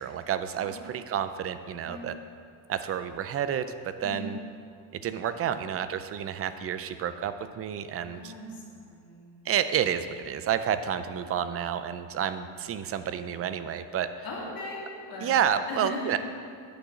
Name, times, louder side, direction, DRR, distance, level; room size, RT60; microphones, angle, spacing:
voice 1, 0.0-2.2 2.7-4.4 4.9-8.3 9.4-14.1 15.2-16.2, right 9 dB, 35° right, 11 dB, 0.4 m, -30 dB
voice 2, 0.6-1.0 1.9-2.1 4.0-4.4 8.0-9.4 14.2-15.4 15.7-16.2, left 1 dB, 45° left, -4 dB, 2.6 m, -39 dB
10.0 x 6.2 x 8.1 m, 2.3 s
cardioid pair, 160°, 47 cm